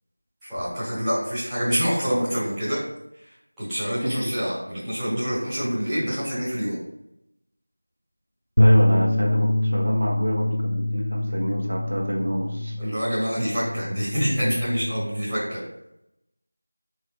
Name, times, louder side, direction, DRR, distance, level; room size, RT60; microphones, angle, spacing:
voice 1, 0.4-2.8 3.2-6.8 12.8-15.6, equal, ahead, -21 dB, 1.7 m, -26 dB
Bass guitar, 8.6-14.8, left 1 dB, 60° left, 0.7 m, -23 dB
voice 2, 8.6-12.7, equal, 65° right, -2 dB, 1.8 m, -28 dB
5.5 x 5.0 x 3.4 m, 0.82 s
figure-of-eight pair, 175°, 0 cm